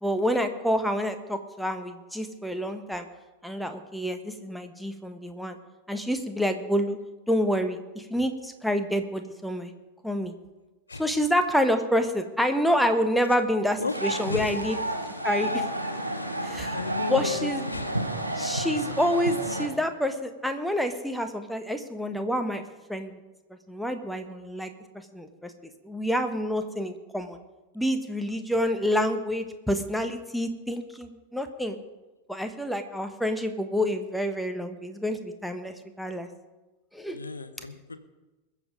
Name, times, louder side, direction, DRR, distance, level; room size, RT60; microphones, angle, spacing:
voice 1, 0.0-3.1 3.4-5.6 5.9-7.0 7.3-9.7 10.0-10.3 10.9-14.8 15.2-15.6 16.4-16.8 17.1-17.6 18.3-22.6 22.9-23.2 23.7-24.7 25.1-25.5 25.8-27.4 27.7-31.8 32.3-36.3 36.9-37.2, equal, ahead, 7 dB, 1.1 m, -28 dB
sound 1, 13.9-19.7, right 1 dB, 90° right, 1.5 m, -31 dB
voice 2, 14.3-14.6 16.1-16.4 16.7-17.9 37.1-38.0, left 4 dB, 80° left, 11 dB, 0.9 m, -34 dB
21.5 x 7.3 x 5.2 m, 1.1 s
figure-of-eight pair, 90°, 0 cm